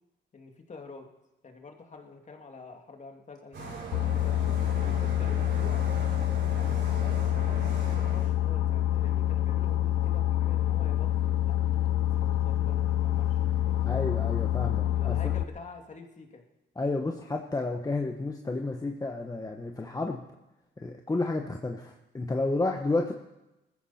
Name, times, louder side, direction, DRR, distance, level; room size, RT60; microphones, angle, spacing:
voice 1, 0.3-1.1 1.4-3.8 4.2-5.9 6.9-11.6 12.0-14.2 14.9-16.4, left 4 dB, 35° left, 3 dB, 2.6 m, -48 dB
sound 1, 3.5-8.3, right 3 dB, 70° right, 7.0 m, -40 dB
Boat Water vehicle, 3.9-15.4, left 12 dB, 90° left, 0.7 m, -27 dB
voice 2, 13.9-15.2 16.8-20.2 20.8-23.1, left 2 dB, 20° left, 3 dB, 1.2 m, -31 dB
20.5 x 14.5 x 4.4 m, 0.96 s
cardioid pair, 90°, 20 cm